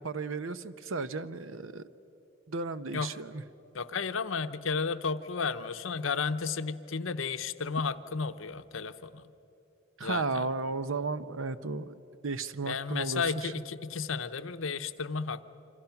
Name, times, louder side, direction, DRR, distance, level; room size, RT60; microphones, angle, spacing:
voice 1, 0.0-1.9 2.5-3.4 10.0-11.9 12.2-13.5, right 3 dB, 85° right, 13 dB, 0.8 m, -34 dB
voice 2, 3.7-9.2 10.0-10.5 12.6-15.4, left 5 dB, 75° left, 11 dB, 0.8 m, -33 dB
27.5 x 25.5 x 5.9 m, 3.0 s
head